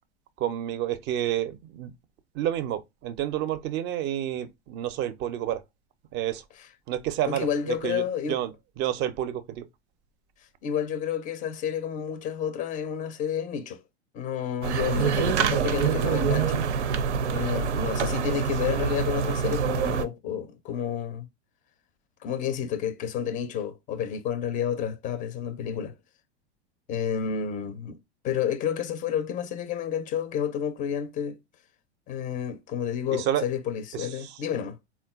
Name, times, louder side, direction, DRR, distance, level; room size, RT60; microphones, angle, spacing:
voice 1, 0.4-1.9 2.3-5.6 6.1-6.4 6.9-9.7 33.1-33.5 33.9-34.4, right 11 dB, 35° right, 0.4 m, -30 dB
voice 2, 7.3-8.4 10.6-13.8 14.1-16.6 17.3-21.3 22.2-26.0 26.9-28.0 28.2-31.4 32.1-34.8, left 8 dB, 25° left, 0.4 m, -30 dB
sound 1, 14.6-20.1, right 7 dB, 85° right, 0.5 m, -26 dB
3.7 x 2.2 x 2.3 m
hypercardioid pair, 95°, 34 cm